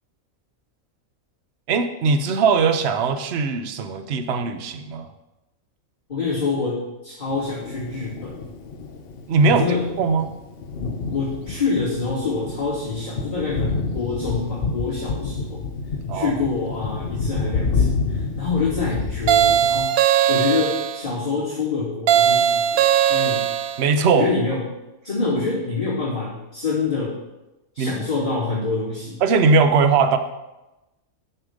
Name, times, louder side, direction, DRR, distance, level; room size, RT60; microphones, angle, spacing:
voice 1, 1.7-5.1 9.3-9.6 10.0-10.3 16.1-16.3 23.8-24.3 27.8-27.9 29.2-30.2, right 4 dB, 55° right, 9 dB, 0.9 m, -19 dB
voice 2, 6.1-8.3 9.4-9.8 11.1-15.6 16.1-20.0 20.3-23.5 24.1-24.7 25.0-27.1 27.7-29.2, left 4 dB, 35° left, -12 dB, 3.1 m, -26 dB
Thunder, 7.3-19.9, left 4 dB, 50° left, 0.9 m, -29 dB
sound 1, 19.3-21.0 22.1-23.8, right 10 dB, 85° right, 1.1 m, -19 dB
9.8 x 6.7 x 5.1 m, 1.0 s
omnidirectional pair, 1.4 m